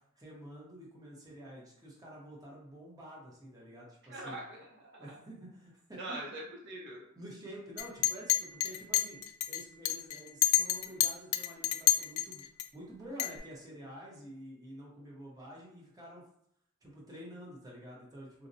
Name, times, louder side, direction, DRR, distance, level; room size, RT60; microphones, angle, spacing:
voice 1, 0.2-4.4 5.0-6.2 7.2-9.2 9.5-12.4 12.7-16.2 16.8-18.5, equal, 15° right, -4 dB, 0.8 m, -49 dB
voice 2, 4.1-5.2 6.0-7.1, right 1 dB, 55° right, -2 dB, 0.6 m, -43 dB
Chink clink, 7.8-12.6 13.2-13.4, left 13 dB, 85° left, 0.3 m, -29 dB
4.0 x 2.1 x 2.6 m, 0.72 s
head